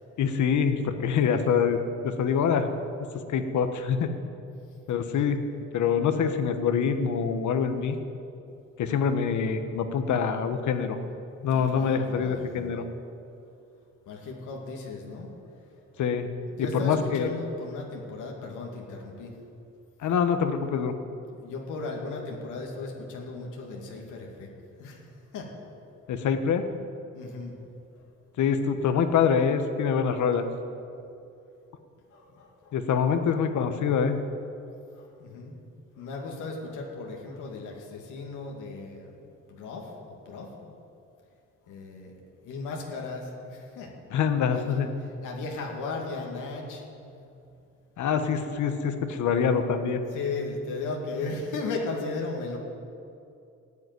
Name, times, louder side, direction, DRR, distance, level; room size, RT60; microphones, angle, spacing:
voice 1, 0.2-1.8 2.0-2.7 3.3-4.1 4.9-5.4 5.7-8.0 8.8-11.0 11.4-12.9 16.0-16.3 16.6-17.3 20.0-20.9 26.1-26.6 28.4-30.4 32.7-34.2 44.1-44.9 48.0-50.0, left 6 dB, 75° left, 8 dB, 1.3 m, -25 dB
voice 2, 11.5-12.7 14.1-15.3 16.5-19.3 21.4-24.5 24.8-25.0 25.3-25.5 27.1-27.6 32.1-32.8 34.9-35.6 35.9-39.1 39.5-40.7 41.7-42.1 42.4-43.9 44.5-44.9 45.2-47.3 50.1-52.6, left 3 dB, 90° left, 0 dB, 2.4 m, -36 dB
14.5 x 7.9 x 9.7 m, 2.6 s
cardioid pair, 90°, 30 cm